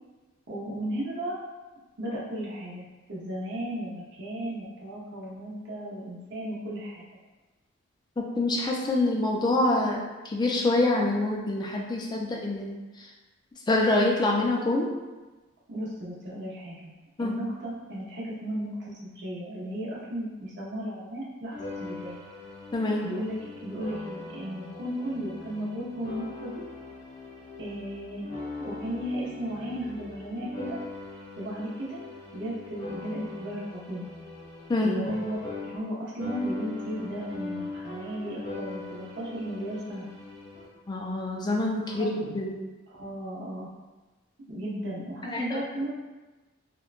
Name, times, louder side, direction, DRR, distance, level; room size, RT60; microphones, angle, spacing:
voice 1, 0.5-1.4 2.0-7.0 15.7-16.9 17.2-22.3 23.0-26.5 27.6-28.3 28.6-30.8 31.4-32.0 32.3-34.1 34.8-35.4 35.6-40.1 41.9-42.1 42.9-43.7 44.5-45.9, equal, 60° right, -6 dB, 0.7 m, -35 dB
voice 2, 8.2-13.1 13.7-14.9 17.2-17.4 22.7-23.0 34.7-35.1 40.9-42.6 45.3-45.6, left 2 dB, 20° left, -1 dB, 0.3 m, -26 dB
sound 1, 21.5-35.9 36.2-40.6, left 3 dB, 40° left, 0.8 m, -41 dB
3.0 x 2.1 x 2.4 m, 1.2 s
head